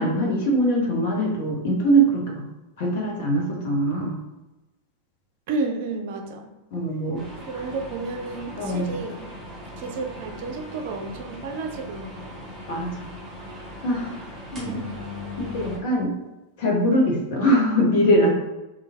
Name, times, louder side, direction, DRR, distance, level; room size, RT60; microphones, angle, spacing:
voice 1, 0.0-2.4 2.8-4.1 6.7-7.2 8.6-8.9 12.7-12.9 13.8-14.2 14.5-14.8 15.5-16.1 16.6-18.3, right 1 dB, 50° left, -1 dB, 0.9 m, -22 dB
voice 2, 5.5-6.5 7.5-9.3 9.8-12.3 14.6-15.0, right 3 dB, 50° right, 4 dB, 0.4 m, -31 dB
sound 1, 7.1-15.8, left 1 dB, 15° right, 1.1 m, -39 dB
3.2 x 2.3 x 3.3 m, 1.0 s
figure-of-eight pair, 90°, 0 cm